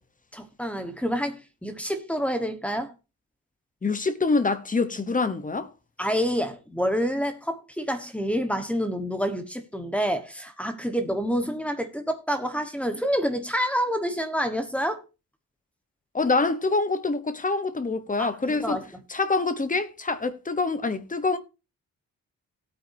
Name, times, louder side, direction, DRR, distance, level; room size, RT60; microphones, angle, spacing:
voice 1, 0.3-2.9 6.0-15.0 18.2-18.8, equal, 5° left, 1.3 m, -28 dB
voice 2, 3.8-5.7 16.1-18.8 19.1-21.4, left 3 dB, 25° left, 0.9 m, -25 dB
16.5 x 8.9 x 2.7 m
wide cardioid pair, 160°, 35 cm